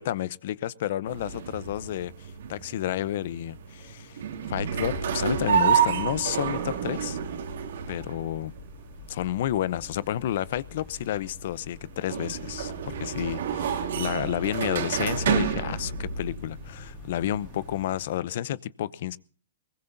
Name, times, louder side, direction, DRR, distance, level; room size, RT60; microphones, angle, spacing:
voice 1, 0.0-4.2 4.5-7.2 7.9-8.5 9.1-19.2, left 12 dB, 60° left, 0.7 m, -31 dB
sound 1, 1.1-18.1, right 7 dB, 70° right, 2.5 m, -30 dB
sound 2, 4.9-17.8, left 4 dB, 20° left, 5.7 m, -49 dB
21.5 x 19.5 x 2.7 m
hypercardioid pair, 140°, 0 cm